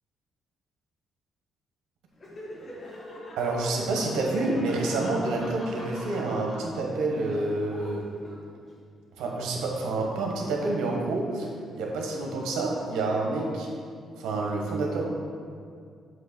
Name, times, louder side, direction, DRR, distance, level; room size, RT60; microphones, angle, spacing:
Laughter, 2.1-8.7, left 1 dB, 40° left, 1.4 m, -43 dB
voice 1, 3.3-8.1 9.2-11.5 11.7-13.7 14.2-15.1, right 2 dB, 90° right, -1 dB, 1.2 m, -28 dB
7.5 x 3.1 x 6.0 m, 2.2 s
cardioid pair, 90°, 0 cm